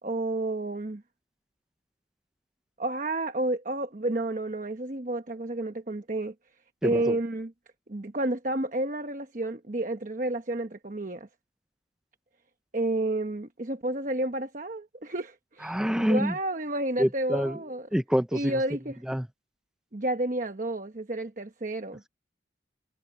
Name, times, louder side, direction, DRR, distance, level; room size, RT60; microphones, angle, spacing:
voice 1, 0.0-1.0 2.8-6.3 6.8-7.5 7.9-11.3 12.7-17.9 18.3-19.0 19.9-22.0, right 2 dB, 45° right, 1.1 m, -31 dB
voice 2, 6.8-7.1 15.6-16.3 17.0-17.6 17.9-18.5 19.1-19.3, equal, 5° right, 0.6 m, -26 dB
head